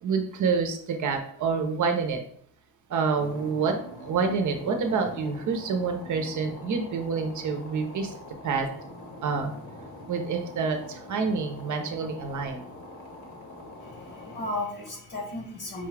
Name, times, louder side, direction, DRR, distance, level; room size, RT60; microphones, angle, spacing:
voice 1, 0.0-2.2 2.9-3.8 4.0-8.1 8.4-8.7 9.2-9.5 10.1-12.6, right 5 dB, 50° right, 4 dB, 0.7 m, -27 dB
sound 1, 3.1-14.5, left 1 dB, 35° left, 1.0 m, -44 dB
voice 2, 13.8-15.9, left 2 dB, 70° left, -1 dB, 1.7 m, -35 dB
5.4 x 2.3 x 3.3 m, 0.62 s
cardioid pair, 115°, 39 cm